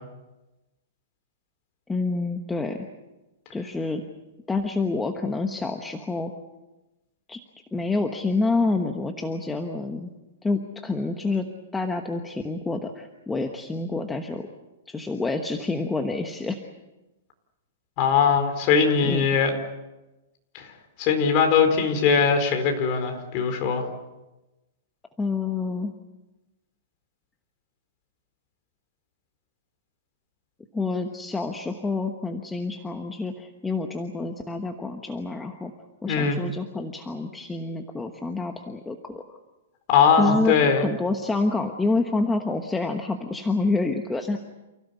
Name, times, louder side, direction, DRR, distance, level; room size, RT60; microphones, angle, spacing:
voice 1, 1.9-2.9 3.5-4.0 4.5-6.3 7.3-7.4 7.7-10.1 10.4-11.5 11.7-14.5 14.9-16.6 19.0-19.3 25.2-25.9 30.7-35.7 36.0-39.2 40.2-44.4, left 3 dB, 5° left, 4 dB, 1.1 m, -27 dB
voice 2, 18.0-19.5 20.5-20.7 21.0-23.9 36.1-36.4 39.9-40.9, left 6 dB, 30° left, 5 dB, 4.3 m, -21 dB
29.0 x 16.5 x 8.3 m, 1.0 s
hypercardioid pair, 165°, 0 cm